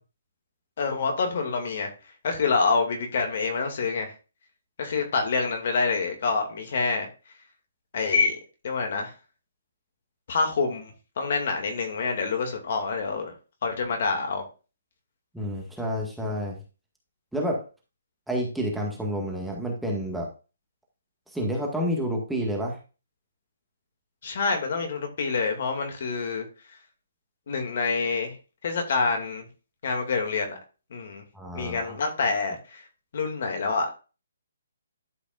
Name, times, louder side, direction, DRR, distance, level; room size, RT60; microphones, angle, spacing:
voice 1, 0.8-1.9 2.2-4.1 4.8-7.1 7.9-8.4 8.6-9.1 10.3-13.3 13.6-14.4 24.2-26.4 27.5-28.3 28.6-29.5 29.8-30.6 30.9-31.2 31.5-32.8 33.1-34.0, left 4 dB, 55° left, 2.3 m, -27 dB
voice 2, 15.3-16.6 17.3-17.6 18.3-20.3 21.3-22.8 31.3-32.0, equal, 5° right, 1.8 m, -29 dB
12.0 x 5.1 x 2.5 m
hypercardioid pair, 155°, 0 cm